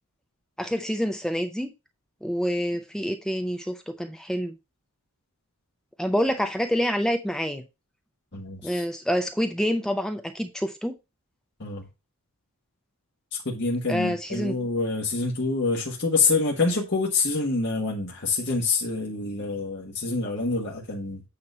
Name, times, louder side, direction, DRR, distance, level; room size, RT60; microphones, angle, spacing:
voice 1, 0.6-1.7 2.2-4.5 6.0-7.6 8.6-10.9 13.9-14.5, equal, 5° left, 0.5 m, -27 dB
voice 2, 8.3-8.8 11.6-11.8 13.3-21.2, left 3 dB, 50° left, 1.5 m, -26 dB
8.8 x 3.0 x 5.4 m
head